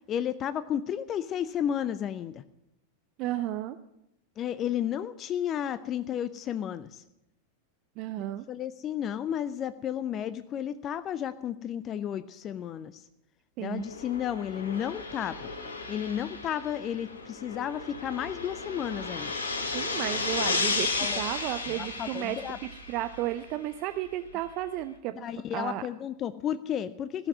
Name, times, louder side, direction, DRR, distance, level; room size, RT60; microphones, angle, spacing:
voice 1, 0.1-2.4 4.4-7.0 8.5-13.0 13.6-15.5 15.9-19.3 21.0-21.2 21.7-22.6 25.2-27.3, left 9 dB, 30° left, 14 dB, 0.5 m, -32 dB
voice 2, 3.2-3.8 8.0-8.5 13.6-13.9 19.7-22.4 22.7-25.8, right 14 dB, 40° right, 11 dB, 0.6 m, -33 dB
sound 1, 13.8-23.3, left 3 dB, 70° left, 2.8 m, -34 dB
16.0 x 7.3 x 9.2 m, 0.85 s
figure-of-eight pair, 90°, 0 cm